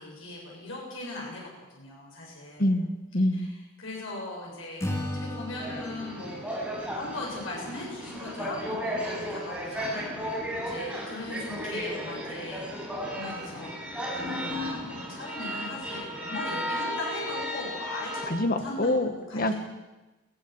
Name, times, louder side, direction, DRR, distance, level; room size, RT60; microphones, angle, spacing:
voice 1, 0.0-2.7 3.3-6.4 6.9-10.4 10.7-19.5, left 2 dB, 80° left, -2 dB, 7.2 m, -39 dB
voice 2, 2.6-3.5 18.3-19.5, left 1 dB, 45° left, 8 dB, 1.8 m, -26 dB
Acoustic guitar / Strum, 4.8-8.1, left 1 dB, 15° left, 2.7 m, -37 dB
train sound with crowd, 5.6-18.2, equal, 5° right, 6.6 m, -34 dB
22.0 x 16.5 x 8.1 m, 1.1 s
head